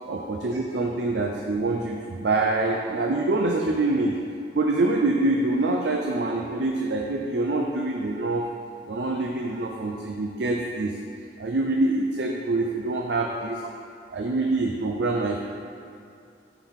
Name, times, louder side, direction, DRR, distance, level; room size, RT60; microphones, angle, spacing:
voice 1, 0.1-4.2 4.5-8.5 8.9-11.0 11.4-13.6 14.1-15.4, right 2 dB, 70° right, 0 dB, 0.5 m, -25 dB
9.9 x 4.0 x 3.6 m, 2.5 s
head